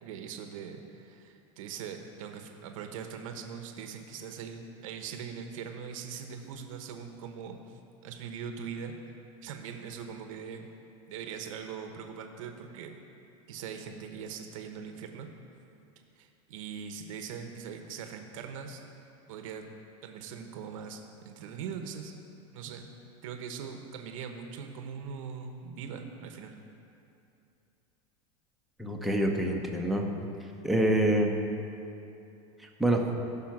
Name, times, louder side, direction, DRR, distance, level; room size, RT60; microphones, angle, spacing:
voice 1, 0.0-9.1 9.4-10.7 11.1-13.0 13.5-15.3 16.2-18.8 19.3-19.7 20.0-22.1 22.5-22.9 23.2-26.6, right 6 dB, 80° right, 5 dB, 1.0 m, -41 dB
voice 2, 28.8-30.0 30.6-31.3 32.8-33.0, right 1 dB, ahead, 0 dB, 0.8 m, -26 dB
15.0 x 5.7 x 6.0 m, 2.7 s
supercardioid pair, 160°, 17 cm